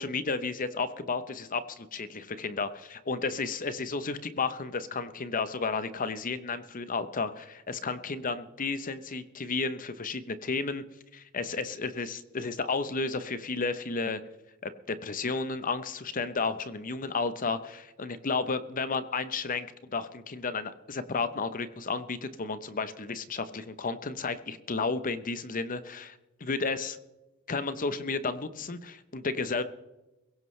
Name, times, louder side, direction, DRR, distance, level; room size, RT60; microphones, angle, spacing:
voice 1, 0.0-10.8 11.1-14.2 14.6-26.1 26.4-27.0 27.5-29.6, left 4 dB, 40° left, 12 dB, 0.8 m, -32 dB
22.5 x 16.5 x 3.2 m, 1.0 s
head